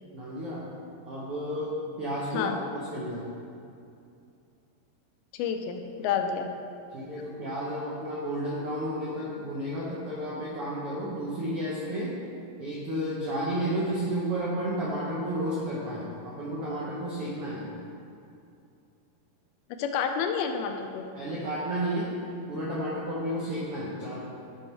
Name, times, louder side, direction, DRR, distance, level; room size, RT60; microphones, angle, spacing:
voice 1, 0.1-0.6 1.0-1.7 2.0-3.2 6.9-12.1 12.6-17.7 21.1-22.1 22.5-24.2, right 1 dB, 75° right, -6 dB, 1.3 m, -32 dB
voice 2, 5.3-6.5 19.8-21.1, left 7 dB, 85° left, 5 dB, 2.4 m, -29 dB
9.8 x 5.3 x 4.6 m, 2.5 s
omnidirectional pair, 4.3 m